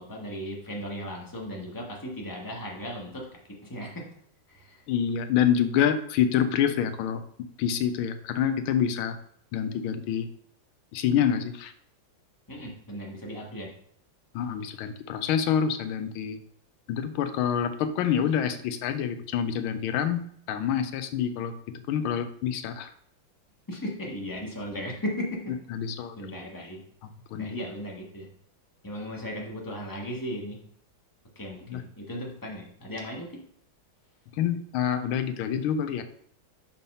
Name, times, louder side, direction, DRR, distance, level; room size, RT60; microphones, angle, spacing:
voice 1, 0.0-3.3 3.7-3.9 4.5-4.8 12.5-13.7 23.7-25.3 26.2-26.8 27.4-28.3 28.8-30.6 31.3-33.4, equal, 10° left, -2 dB, 1.4 m, -36 dB
voice 2, 4.9-7.2 7.6-9.2 9.5-10.3 10.9-11.7 14.3-16.4 16.9-21.5 21.9-22.9 25.7-26.2 27.3-27.5 31.7-31.8 34.4-36.0, left 8 dB, 85° left, 9 dB, 1.5 m, -27 dB
5.5 x 5.2 x 5.5 m, 0.64 s
omnidirectional pair, 2.2 m